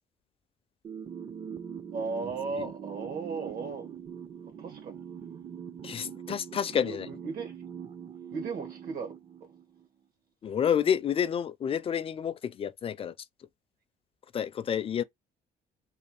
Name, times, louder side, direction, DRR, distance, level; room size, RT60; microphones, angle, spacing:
sound 1, 0.8-9.9, right 8 dB, 30° right, 0.6 m, -43 dB
voice 1, 1.9-3.9 4.6-5.0 6.8-7.5 8.3-9.1 9.4-9.5, right 4 dB, 65° right, 1.5 m, -36 dB
voice 2, 5.8-7.1 10.4-13.1 14.3-15.0, left 8 dB, 35° left, 0.4 m, -29 dB
3.3 x 2.4 x 4.1 m
cardioid pair, 110°, 17 cm